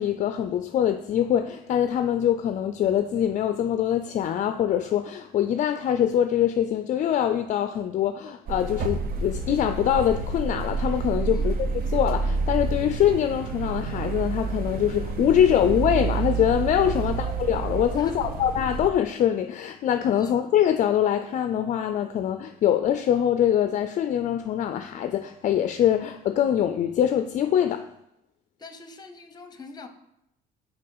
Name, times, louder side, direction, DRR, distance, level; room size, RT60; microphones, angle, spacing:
voice 1, 0.0-27.9, left 10 dB, 45° left, 0.4 m, -24 dB
sound 1, 8.5-18.9, right 4 dB, 60° right, 0.7 m, -29 dB
voice 2, 17.9-18.3 20.2-20.3 28.6-29.9, left 3 dB, 25° left, 0.8 m, -43 dB
5.4 x 4.3 x 5.4 m
cardioid pair, 110°, 17 cm